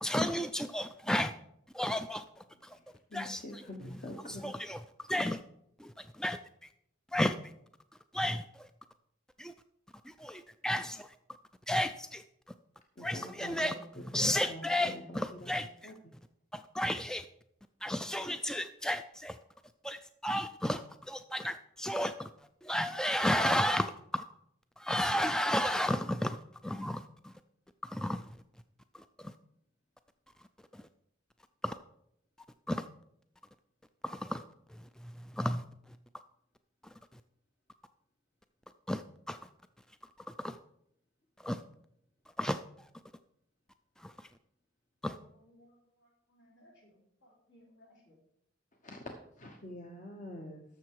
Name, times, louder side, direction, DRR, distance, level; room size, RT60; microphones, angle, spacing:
voice 1, 0.0-1.3 1.7-2.2 2.6-2.8 3.1-5.4 5.8-6.4 7.1-7.3 8.1-8.7 9.4-9.5 10.1-11.1 11.7-12.2 13.0-15.9 16.7-17.2 17.8-19.4 19.8-22.3 22.6-24.2 24.8-26.4 26.6-27.3 27.9-28.2 29.2-29.3 31.6-31.7 32.7-32.9 34.0-34.4 35.3-35.6 38.9-39.0 39.3-39.4 40.4-40.6 41.4-41.6 42.4-42.6 44.0-44.1 45.0-45.2, left 1 dB, 5° left, 9 dB, 0.3 m, -33 dB
voice 2, 2.8-4.6 13.1-13.8 14.5-16.1 48.8-50.6, left 1 dB, 40° left, 3 dB, 1.0 m, -46 dB
voice 3, 45.1-48.2, equal, 70° left, -2 dB, 4.3 m, -63 dB
13.0 x 6.7 x 4.7 m, 0.74 s
head